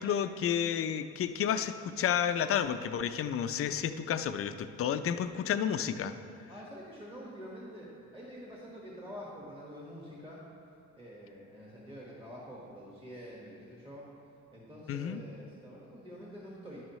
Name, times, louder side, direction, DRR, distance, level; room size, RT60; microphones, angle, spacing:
voice 1, 0.0-6.1 14.9-15.2, left 8 dB, 50° left, 10 dB, 0.4 m, -31 dB
voice 2, 6.5-10.4 10.9-14.0 14.5-16.8, equal, 20° right, -5 dB, 1.5 m, -47 dB
10.5 x 6.3 x 3.1 m, 2.5 s
cardioid pair, 90°, 30 cm